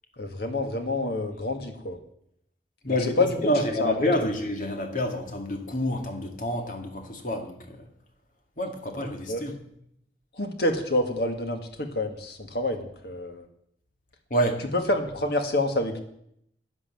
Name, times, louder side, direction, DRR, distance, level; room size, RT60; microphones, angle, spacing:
voice 1, 0.2-2.0 2.9-3.5 3.8-4.1 9.3-9.4 10.3-13.4 14.7-16.0, left 2 dB, 65° left, 5 dB, 2.0 m, -27 dB
voice 2, 2.8-3.2 3.4-7.8 8.6-9.5 14.3-14.6, equal, 50° left, 4 dB, 2.1 m, -28 dB
11.5 x 9.6 x 7.8 m, 0.74 s
head